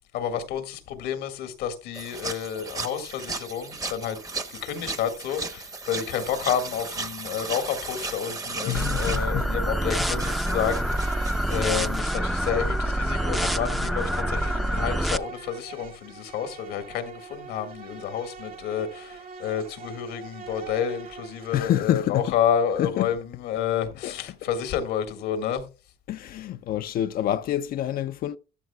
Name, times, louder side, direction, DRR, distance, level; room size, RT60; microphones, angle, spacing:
voice 1, 0.1-4.2 4.5-25.7, left 8 dB, 90° left, 1.8 m, -30 dB
sound 1, 1.9-12.0, right 3 dB, 20° right, 0.9 m, -36 dB
voice 2, 8.6-9.5 21.5-22.4 22.8-23.1 24.0-24.1 26.1-28.4, left 11 dB, 60° left, 0.5 m, -27 dB
sound 2, 8.7-15.2, right 1 dB, ahead, 0.5 m, -26 dB
Insect, 10.4-21.9, right 6 dB, 60° right, 2.0 m, -43 dB
14.0 x 11.0 x 2.3 m
cardioid pair, 110°, 17 cm